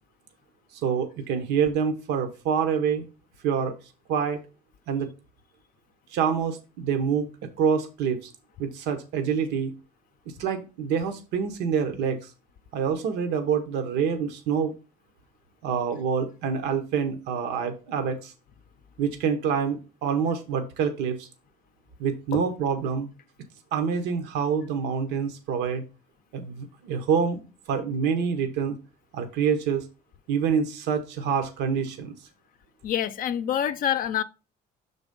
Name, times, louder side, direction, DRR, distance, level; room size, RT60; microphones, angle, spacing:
voice 1, 0.7-3.1 3.4-3.7 4.1-4.4 4.9-5.1 6.1-8.3 8.6-9.7 10.4-12.3 12.7-14.8 15.6-18.3 19.0-21.3 22.0-23.1 23.7-25.8 26.3-27.4 27.7-28.8 29.1-29.9 30.3-32.1, right 6 dB, 85° right, 1.0 m, -26 dB
voice 2, 32.8-34.2, left 10 dB, 55° left, 0.5 m, -26 dB
6.0 x 4.0 x 5.2 m
cardioid pair, 110°, 17 cm